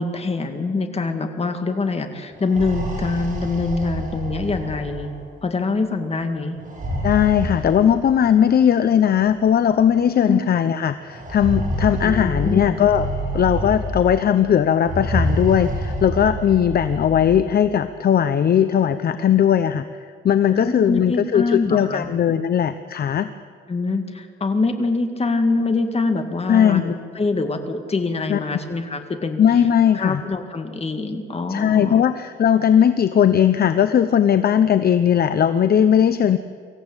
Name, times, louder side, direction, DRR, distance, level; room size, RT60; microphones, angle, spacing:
voice 1, 0.0-5.1 5.4-6.6 10.3-10.4 12.0-12.8 20.6-22.1 23.7-29.4 29.9-32.0, left 3 dB, 30° left, 6 dB, 2.2 m, -24 dB
sound 1, 2.3-5.2 6.6-8.3 9.3-9.4 9.7-9.8 11.1-14.2 14.8-17.4, right 1 dB, 40° right, 6.3 m, -27 dB
voice 2, 7.0-13.0 13.3-19.9 20.2-23.3 26.5-26.9 28.3-28.4 29.4-30.2 31.5-36.4, left 9 dB, 50° left, 11 dB, 0.8 m, -18 dB
24.5 x 15.0 x 9.0 m, 2.1 s
cardioid pair, 120°, 21 cm